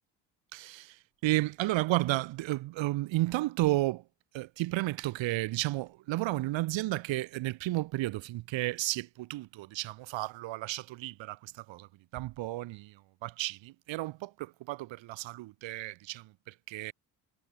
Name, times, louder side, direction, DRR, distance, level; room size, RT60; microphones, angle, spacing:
voice 1, 0.5-1.0 1.2-4.0 4.3-11.9 12.1-12.9 13.2-16.9, right 18 dB, 65° right, 2.1 m, -32 dB
hypercardioid pair, 60°, 49 cm